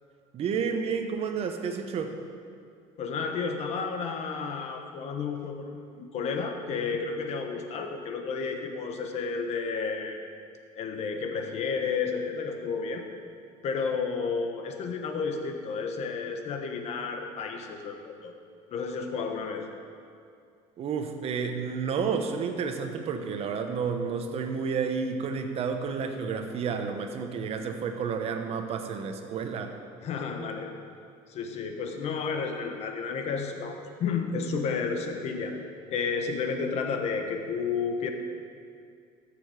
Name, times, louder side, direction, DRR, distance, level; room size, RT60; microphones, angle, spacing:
voice 1, 0.3-2.2 20.8-29.8, right 6 dB, 50° right, 6 dB, 1.1 m, -31 dB
voice 2, 3.0-10.2 10.7-13.0 13.6-18.3 18.7-19.7 30.0-30.7 31.3-35.6 35.9-38.1, left 5 dB, 55° left, 4 dB, 1.3 m, -31 dB
14.0 x 7.0 x 5.0 m, 2.3 s
cardioid pair, 115°, 14 cm